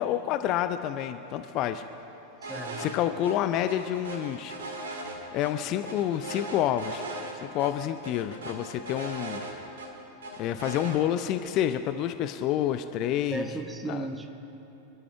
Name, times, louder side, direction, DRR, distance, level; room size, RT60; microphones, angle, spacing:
voice 1, 0.0-1.8 2.8-4.6 5.3-7.1 7.3-9.4 10.4-13.5 13.9-14.1, left 11 dB, 40° left, 10 dB, 0.5 m, -28 dB
sound 1, 2.4-3.0 3.2-3.3 3.7-5.5 5.9-7.3 7.6-7.7 8.0-9.9 10.2-11.0, right 2 dB, 65° right, 2.1 m, -38 dB
voice 2, 2.5-2.9 13.3-14.3, right 2 dB, 10° right, 6 dB, 1.1 m, -35 dB
26.0 x 12.0 x 3.4 m, 3.0 s
figure-of-eight pair, 90°, 0 cm